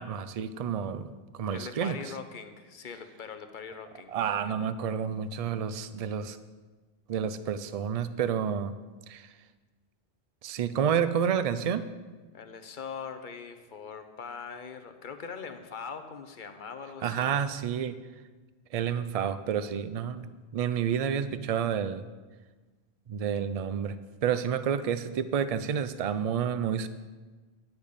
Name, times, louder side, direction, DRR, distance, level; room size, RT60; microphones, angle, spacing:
voice 1, 0.0-2.0 4.1-6.4 7.1-8.7 9.1-9.3 10.4-11.8 17.0-18.0 18.7-22.0 23.1-24.0 24.2-26.9, right 8 dB, 50° right, 13 dB, 0.4 m, -29 dB
voice 2, 1.5-4.1 12.3-17.3, left 6 dB, 50° left, 7 dB, 0.9 m, -41 dB
10.5 x 6.7 x 5.2 m, 1.3 s
omnidirectional pair, 1.1 m